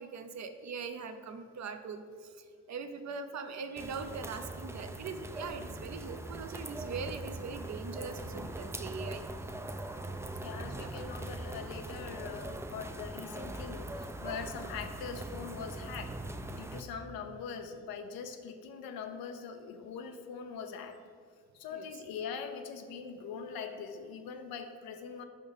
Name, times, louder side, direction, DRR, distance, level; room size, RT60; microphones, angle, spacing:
voice 1, 0.0-9.2 10.8-10.9 21.7-21.9, right 5 dB, 50° right, 8 dB, 0.6 m, -41 dB
sound 1, 3.8-16.8, right 1 dB, 10° right, 0.3 m, -41 dB
voice 2, 10.4-16.1 16.5-21.0 21.5-25.2, left 6 dB, 75° left, 6 dB, 0.5 m, -42 dB
5.3 x 3.5 x 5.5 m, 2.1 s
hypercardioid pair, 45°, 36 cm